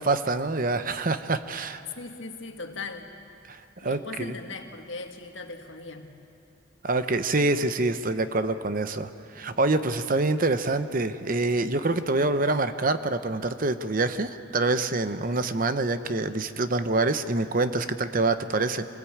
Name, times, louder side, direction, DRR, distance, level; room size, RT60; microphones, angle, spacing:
voice 1, 0.0-1.8 3.5-4.3 6.8-18.9, right 2 dB, 45° right, 10 dB, 0.8 m, -26 dB
voice 2, 2.0-3.1 3.8-6.1, left 3 dB, 70° left, 4 dB, 1.9 m, -38 dB
25.5 x 18.5 x 8.7 m, 2.6 s
head